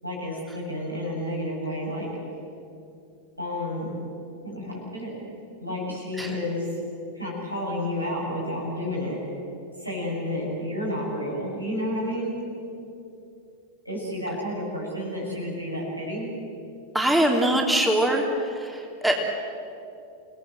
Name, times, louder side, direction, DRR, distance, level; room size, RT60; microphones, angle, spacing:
voice 1, 0.0-2.1 3.4-3.9 4.4-5.1 5.6-6.7 7.1-9.2 9.8-12.4 13.8-16.3, left 1 dB, 90° right, -4 dB, 7.9 m, -30 dB
voice 2, 16.9-18.3 18.6-19.2, right 1 dB, 5° right, 0 dB, 3.0 m, -22 dB
28.5 x 18.5 x 7.7 m, 2.6 s
figure-of-eight pair, 90°, 0 cm